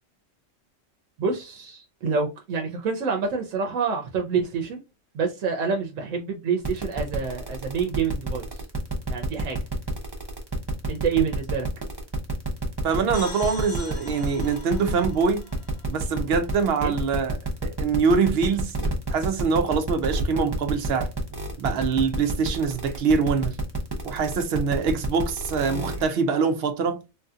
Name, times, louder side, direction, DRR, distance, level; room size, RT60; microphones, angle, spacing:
voice 1, 1.2-4.8 5.1-8.5 9.1-9.6 10.9-11.7 16.8-16.9 25.7-26.0, right 5 dB, 90° right, 1.0 m, -27 dB
sound 1, 6.6-26.1, right 4 dB, 25° right, 0.6 m, -30 dB
voice 2, 12.8-15.4 15.9-18.7 19.1-21.1 21.6-23.6 24.0-27.0, right 5 dB, 65° right, 0.7 m, -24 dB
sound 2, 13.1-16.8, left 4 dB, 55° left, 1.0 m, -42 dB
3.7 x 2.7 x 2.3 m
omnidirectional pair, 1.3 m